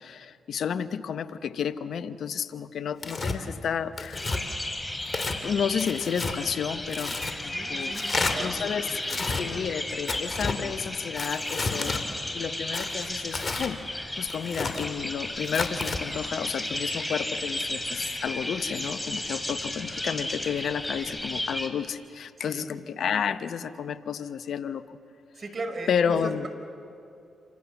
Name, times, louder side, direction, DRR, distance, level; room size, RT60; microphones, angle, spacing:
voice 1, 0.0-4.3 5.4-7.9 8.4-13.8 14.2-25.0 25.9-26.5, left 7 dB, 70° left, 12 dB, 1.0 m, -31 dB
Tearing, 3.0-3.4 4.0-4.4 5.1-5.4 5.8-6.4 6.9-7.3 7.9-8.3 9.0-9.4 10.1-10.6 11.2-12.0 12.7-13.7 14.3-14.9 15.4-16.0, left 3 dB, 45° left, 2.8 m, -31 dB
sound 1, 4.2-21.7, left 1 dB, 15° left, 4.1 m, -34 dB
voice 2, 7.5-9.2 22.4-22.7 25.4-26.5, right 2 dB, 50° right, 7 dB, 4.6 m, -38 dB
28.5 x 26.5 x 7.2 m, 2.5 s
supercardioid pair, 50°, 0 cm